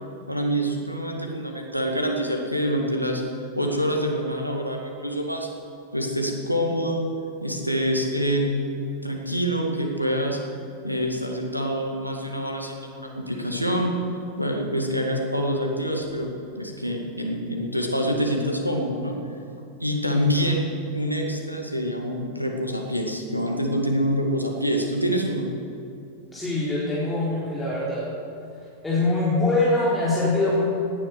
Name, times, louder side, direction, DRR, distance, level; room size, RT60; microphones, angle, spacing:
voice 1, 0.3-5.5 5.9-7.1 7.4-8.7 9.0-10.4 10.8-13.9 14.4-19.1 19.8-25.5, equal, 90° right, 1 dB, 2.0 m, -26 dB
voice 2, 26.3-28.1 28.8-30.6, left 2 dB, 10° left, -8 dB, 4.1 m, -23 dB
18.5 x 10.5 x 6.7 m, 2.7 s
figure-of-eight pair, 90°, 0 cm